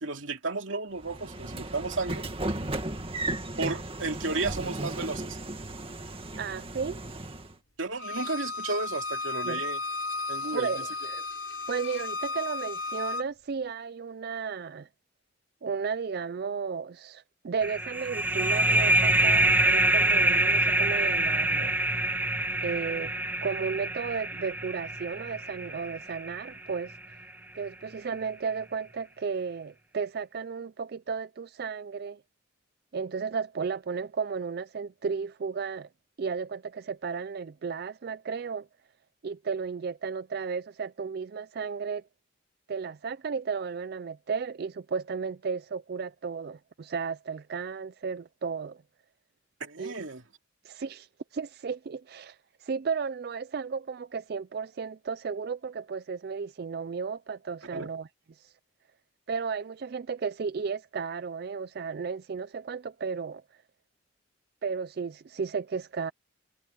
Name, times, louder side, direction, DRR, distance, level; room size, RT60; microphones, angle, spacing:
voice 1, 0.0-2.3 3.6-5.4 7.8-9.8 10.3-10.7 49.6-50.2 57.7-57.9, right 3 dB, 80° right, 2.6 m, -33 dB
Train / Sliding door, 1.0-7.6, right 2 dB, 30° right, 2.0 m, -35 dB
voice 2, 6.4-7.0 9.4-9.6 10.5-11.2 11.7-14.9 15.6-21.8 22.6-23.1 23.4-27.0 27.5-32.2 32.9-35.9 36.2-38.7 39.2-42.0 42.7-48.8 49.8-49.9 50.6-58.5 59.3-63.4 64.6-66.1, right 5 dB, 50° right, 0.4 m, -34 dB
Bowed string instrument, 8.0-13.2, left 3 dB, 90° left, 3.2 m, -34 dB
sound 1, 17.6-26.9, right 1 dB, 10° right, 0.8 m, -25 dB
head